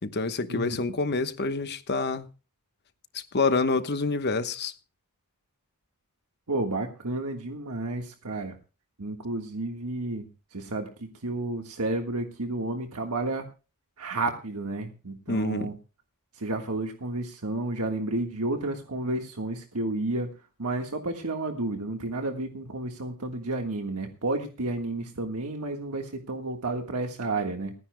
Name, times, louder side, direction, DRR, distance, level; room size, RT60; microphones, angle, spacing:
voice 1, 0.0-2.3 3.1-4.7 15.3-15.7, left 3 dB, 50° left, 1.1 m, -27 dB
voice 2, 6.5-8.6 9.0-13.5 14.0-15.7 16.3-20.3 20.6-27.7, right 2 dB, 90° right, 1.6 m, -31 dB
29.5 x 10.0 x 2.2 m
head